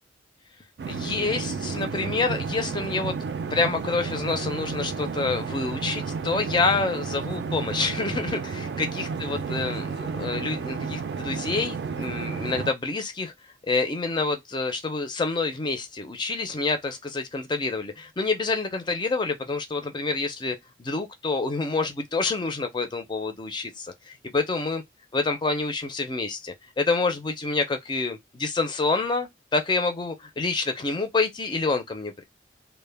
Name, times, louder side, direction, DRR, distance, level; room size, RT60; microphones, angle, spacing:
sound 1, 0.8-12.7, right 5 dB, 60° right, 0.3 m, -32 dB
voice 1, 0.9-3.1 3.5-13.3 13.6-24.8 25.1-32.2, left 3 dB, 25° left, 0.4 m, -27 dB
2.1 x 2.1 x 3.2 m
head